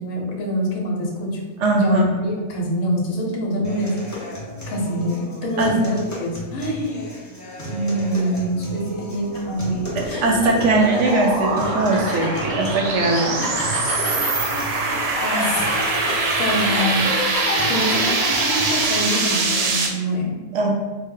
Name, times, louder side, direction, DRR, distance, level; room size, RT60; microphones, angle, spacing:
voice 1, 0.0-1.4 1.7-4.0 4.7-7.1 7.7-10.0 12.0-12.2 15.2-15.6 16.4-20.4, equal, 75° left, 0 dB, 1.2 m, -25 dB
voice 2, 1.6-2.0 5.6-5.7 10.0-13.5 20.5-20.7, right 2 dB, 65° right, 1 dB, 0.8 m, -20 dB
sound 1, 3.6-19.7, equal, 20° left, 0.5 m, -33 dB
sound 2, 9.3-9.5 10.0-19.3, left 2 dB, 55° left, 1.1 m, -30 dB
sound 3, 9.3-19.9, right 3 dB, 90° right, 1.1 m, -24 dB
4.0 x 2.1 x 3.7 m, 1.2 s
omnidirectional pair, 1.4 m